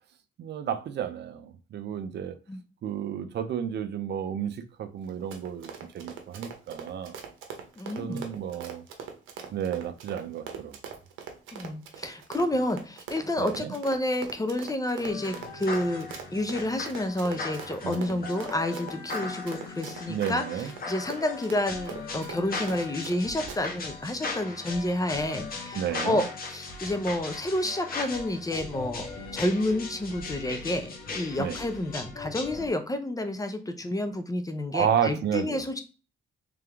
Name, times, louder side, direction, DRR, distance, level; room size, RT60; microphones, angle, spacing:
voice 1, 0.4-2.4 2.8-5.7 5.9-7.1 8.0-8.8 9.5-10.7 13.4-13.7 17.8-18.2 20.1-20.7 25.7-26.2 31.4-31.6 34.7-35.6, right 9 dB, 60° right, 0.5 m, -31 dB
Run, 5.0-23.2 23.5-23.6, right 7 dB, 80° right, 0.8 m, -42 dB
voice 2, 7.8-8.3 11.5-35.8, left 1 dB, 15° left, 0.6 m, -30 dB
sound 1, 15.0-32.7, left 3 dB, 50° left, 1.3 m, -38 dB
sound 2, 20.2-32.7, left 5 dB, 85° left, 0.9 m, -53 dB
3.4 x 3.4 x 3.4 m
cardioid pair, 90°, 20 cm